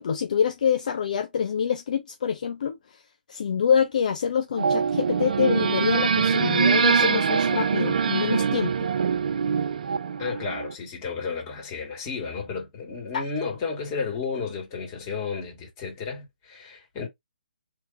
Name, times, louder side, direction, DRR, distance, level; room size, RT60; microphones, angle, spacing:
voice 1, 0.0-3.0 3.3-8.9 13.1-13.2, left 7 dB, 50° left, 0.6 m, -26 dB
sound 1, 4.6-10.7, right 6 dB, 55° right, 0.5 m, -23 dB
voice 2, 10.2-17.1, left 5 dB, 25° left, 2.2 m, -32 dB
4.7 x 3.3 x 2.6 m
figure-of-eight pair, 140°, 5 cm